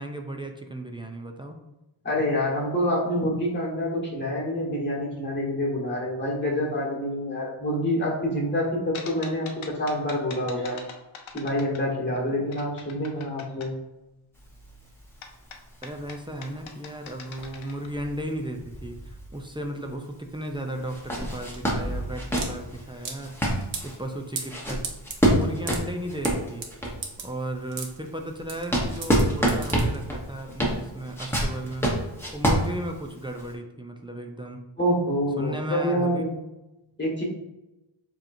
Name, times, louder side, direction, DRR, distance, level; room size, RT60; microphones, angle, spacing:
voice 1, 0.0-1.6 15.8-23.4 23.8-24.8 25.3-26.6 27.2-31.9 32.3-34.6 35.4-36.2, right 1 dB, 10° right, 3 dB, 0.3 m, -35 dB
voice 2, 2.0-10.8 11.3-13.7 34.8-36.3 37.0-37.2, equal, 20° left, -4 dB, 1.4 m, -27 dB
sound 1, 8.9-12.2 12.5-13.7 15.2-17.9, left 6 dB, 70° left, 0.7 m, -43 dB
sound 2, 14.4-19.7 20.0-20.1 20.8-27.2 27.7-33.5, right 1 dB, 5° left, 0.9 m, -28 dB
sound 3, 20.5-30.4, right 5 dB, 65° right, 0.9 m, -38 dB
6.9 x 3.0 x 2.6 m, 0.98 s
wide cardioid pair, 125°, 49 cm